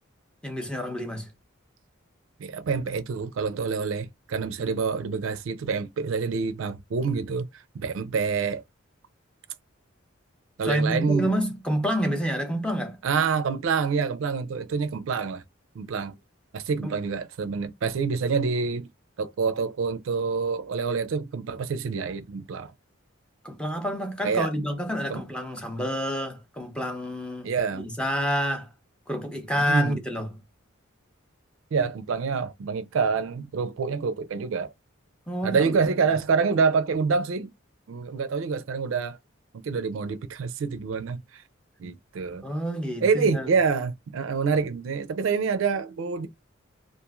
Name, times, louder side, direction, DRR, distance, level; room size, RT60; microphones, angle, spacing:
voice 1, 0.4-1.3 10.6-13.0 16.8-16.9 23.4-28.7 29.1-30.3 35.3-35.8 42.4-43.5, equal, 5° left, 0.6 m, -28 dB
voice 2, 2.4-7.5 7.7-8.6 10.6-11.3 13.0-15.4 15.7-16.1 16.5-18.9 19.2-22.7 24.2-24.5 25.1-25.2 27.4-27.9 29.7-30.0 31.7-34.7 35.4-37.5 37.9-39.2 39.6-41.4 41.8-42.5 43.0-46.3, right 5 dB, 70° right, 0.4 m, -27 dB
3.0 x 2.4 x 2.3 m
head